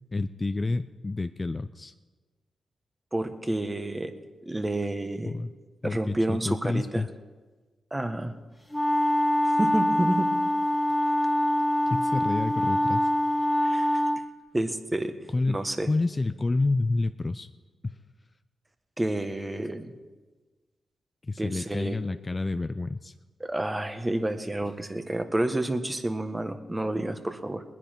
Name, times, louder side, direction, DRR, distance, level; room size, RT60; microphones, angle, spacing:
voice 1, 0.1-1.9 5.3-5.5 5.8-7.1 11.9-13.1 15.3-15.6 15.9-17.5 17.8-17.9 21.2-23.1, left 3 dB, 35° left, 10 dB, 0.5 m, -29 dB
voice 2, 3.1-4.1 4.4-5.3 5.8-7.1 7.9-8.3 9.4-10.3 13.6-14.1 14.5-15.1 15.5-15.9 19.0-19.9 21.4-22.0 23.4-27.6, right 1 dB, 20° right, 8 dB, 1.4 m, -29 dB
sound 1, 8.7-14.2, left 1 dB, 5° left, 2.1 m, -24 dB
20.5 x 10.0 x 4.6 m, 1.3 s
cardioid pair, 55°, 0 cm